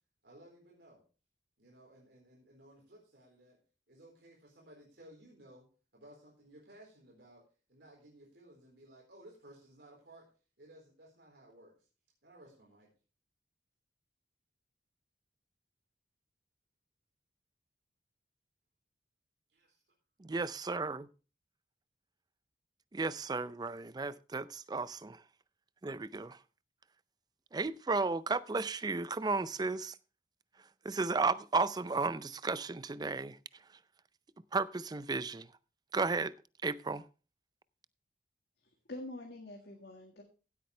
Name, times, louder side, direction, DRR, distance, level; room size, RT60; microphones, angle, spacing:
voice 1, 0.2-1.0 1.6-3.6 3.9-10.3 10.6-11.9 12.2-12.9 19.5-19.7, right 1 dB, 70° right, 4.2 m, -58 dB
voice 2, 20.2-21.1 22.9-25.2 25.8-26.4 27.5-29.9 30.8-33.4 34.5-35.5 35.9-36.3 36.6-37.0, right 3 dB, 25° right, 0.4 m, -34 dB
voice 3, 38.6-40.2, left 1 dB, 70° left, 1.8 m, -46 dB
16.0 x 8.5 x 3.3 m
head